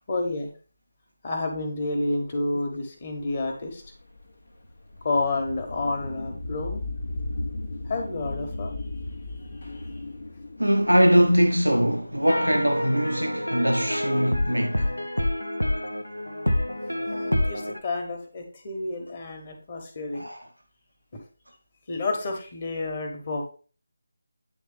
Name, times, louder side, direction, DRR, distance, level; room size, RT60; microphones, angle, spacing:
voice 1, 0.1-0.5 1.2-3.8 5.0-6.8 7.8-8.7 9.9-10.0 17.1-20.2 21.1-21.2 21.9-23.5, left 2 dB, 35° left, 1.3 m, -30 dB
sound 1, 3.3-12.3, left 2 dB, 60° left, 1.0 m, -36 dB
voice 2, 10.6-14.9 20.1-20.4, equal, 85° right, 0.7 m, -22 dB
sound 2, 12.3-17.8, left 1 dB, 85° left, 0.8 m, -27 dB
9.2 x 3.2 x 3.4 m
figure-of-eight pair, 160°, 0 cm